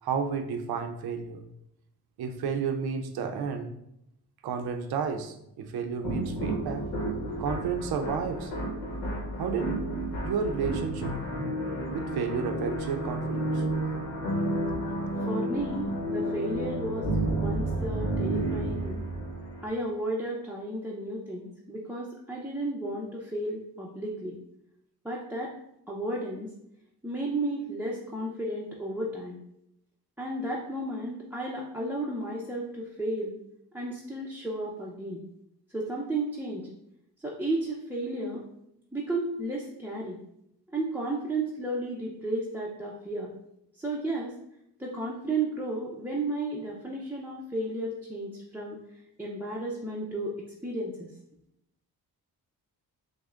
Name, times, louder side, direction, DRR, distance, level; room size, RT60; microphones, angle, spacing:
voice 1, 0.0-1.4 2.2-3.7 4.4-6.9 7.4-8.5 9.4-11.2 11.9-13.6, right 6 dB, 75° right, 6 dB, 0.6 m, -32 dB
sound 1, 6.0-19.7, right 1 dB, 85° left, 0.9 m, -31 dB
voice 2, 15.2-19.0 19.6-24.4 25.0-25.5 25.9-26.5 27.0-29.4 30.2-33.4 33.7-35.2 35.7-36.7 37.2-38.4 38.9-40.2 40.7-43.3 43.8-44.3 44.8-48.8 49.2-50.4 50.6-51.1, right 2 dB, 5° right, -4 dB, 0.5 m, -33 dB
6.2 x 2.1 x 2.4 m, 0.78 s
cardioid pair, 85°, 38 cm